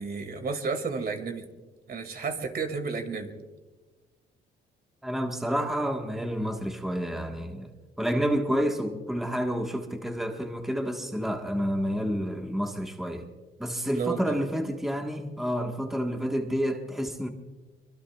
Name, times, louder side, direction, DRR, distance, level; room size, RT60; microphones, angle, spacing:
voice 1, 0.0-1.5 1.9-3.3 13.9-14.4, right 5 dB, 50° right, 2.3 m, -32 dB
voice 2, 5.0-7.7 8.0-13.3 13.6-17.3, equal, ahead, 1.4 m, -29 dB
24.5 x 22.5 x 2.4 m
cardioid pair, 90°, 20 cm